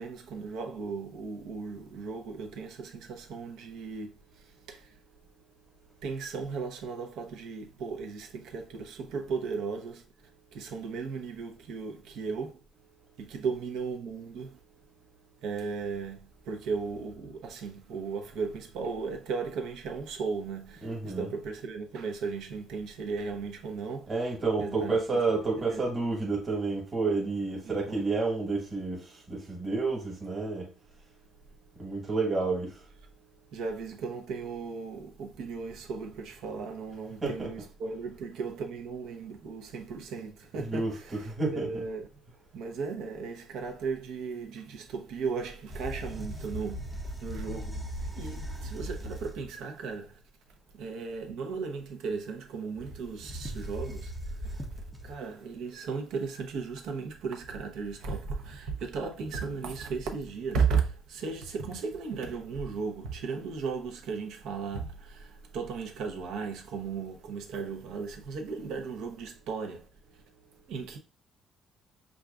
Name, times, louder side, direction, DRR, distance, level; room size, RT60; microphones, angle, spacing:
voice 1, 0.0-5.0 6.0-10.0 10.5-12.6 13.2-14.6 15.4-24.1 24.6-25.8 27.6-28.0 33.5-42.1 42.5-50.2 50.8-69.9 70.7-71.0, right 5 dB, 70° right, 0.8 m, -36 dB
voice 2, 20.8-21.3 24.1-30.7 31.8-32.8 37.2-37.5 40.6-41.8, right 3 dB, 20° right, 1.3 m, -30 dB
sound 1, 45.7-49.6 52.8-55.1, equal, 5° right, 0.5 m, -38 dB
6.0 x 2.4 x 2.4 m
cardioid pair, 160°, 0 cm